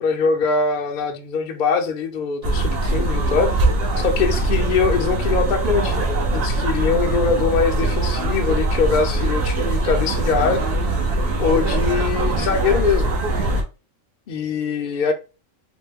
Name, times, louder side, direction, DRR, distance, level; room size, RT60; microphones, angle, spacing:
voice 1, 0.0-3.5 4.0-10.6 11.4-13.1 14.3-15.1, left 5 dB, 50° left, 0.6 m, -22 dB
sound 1, 2.4-13.6, right 2 dB, 55° right, 0.8 m, -21 dB
3.0 x 2.1 x 3.5 m
omnidirectional pair, 1.4 m